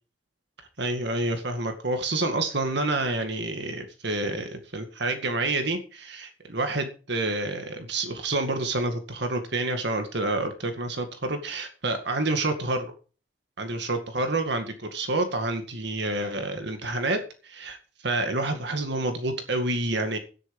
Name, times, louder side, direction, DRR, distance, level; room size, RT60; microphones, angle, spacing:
voice 1, 0.8-12.9 13.6-20.2, right 2 dB, 60° right, 6 dB, 2.0 m, -28 dB
12.5 x 10.5 x 5.3 m, 0.36 s
head